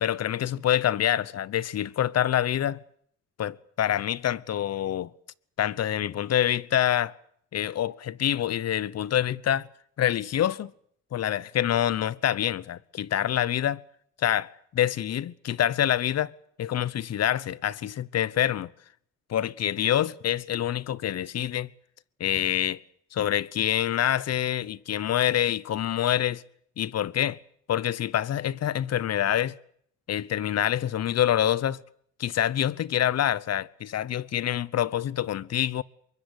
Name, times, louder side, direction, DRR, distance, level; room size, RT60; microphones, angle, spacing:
voice 1, 0.0-2.8 3.4-5.1 5.6-7.1 7.5-9.7 10.0-10.7 11.1-13.8 14.2-16.3 16.6-18.7 19.3-21.7 22.2-22.8 23.1-26.4 26.8-27.4 27.7-29.6 30.1-31.8 32.2-35.8, left 11 dB, 55° left, 0.9 m, -26 dB
24.0 x 21.5 x 8.1 m
cardioid pair, 90°, 30 cm